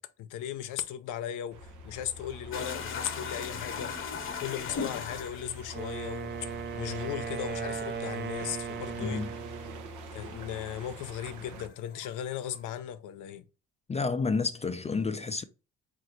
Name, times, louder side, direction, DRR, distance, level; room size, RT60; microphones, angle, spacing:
voice 1, 0.0-4.1 4.4-6.5 6.8-9.3 10.1-13.4, left 10 dB, 85° left, 0.6 m, -37 dB
sound 1, 1.5-11.7, right 1 dB, 85° right, 0.7 m, -45 dB
sound 2, 2.5-11.0 11.3-12.7, left 5 dB, 45° left, 0.9 m, -39 dB
Wind instrument woodwind instrument, 5.7-9.9, right 6 dB, 35° right, 0.5 m, -37 dB
voice 2, 13.9-15.4, left 4 dB, 20° left, 0.4 m, -30 dB
3.8 x 2.6 x 4.3 m
cardioid pair, 90°, 30 cm